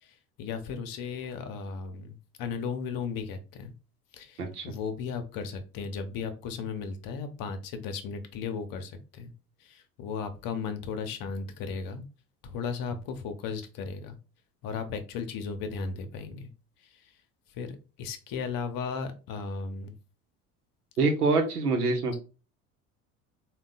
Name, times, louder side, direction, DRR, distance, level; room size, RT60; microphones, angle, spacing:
voice 1, 0.0-3.7 4.1-9.3 9.6-12.0 12.4-14.2 14.6-16.5 16.8-17.1 17.5-19.9, left 5 dB, 50° left, 8 dB, 0.8 m, -36 dB
voice 2, 21.0-22.2, right 3 dB, 85° right, 4 dB, 0.9 m, -25 dB
3.6 x 2.4 x 3.9 m, 0.33 s
figure-of-eight pair, 60°, 44 cm